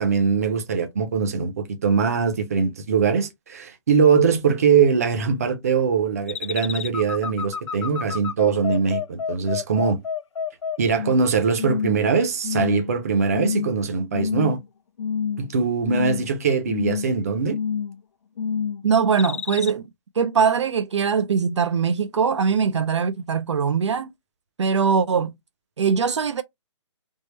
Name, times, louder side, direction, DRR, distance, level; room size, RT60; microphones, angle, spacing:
voice 1, 0.0-10.0 10.8-14.6 15.4-17.6, right 5 dB, 30° right, 0.6 m, -22 dB
sound 1, 6.3-11.3 11.6-12.1 12.4-13.0 13.3-13.7 14.1-14.7 15.0-15.5 15.8-16.3 16.7-17.1 17.5-18.0 18.4-18.8 19.2-19.7, left 6 dB, 80° left, 0.4 m, -28 dB
voice 2, 18.8-19.9 20.2-24.1 24.6-25.3 25.8-26.4, right 6 dB, 70° right, 0.5 m, -21 dB
3.5 x 2.0 x 3.1 m
hypercardioid pair, 175°, 16 cm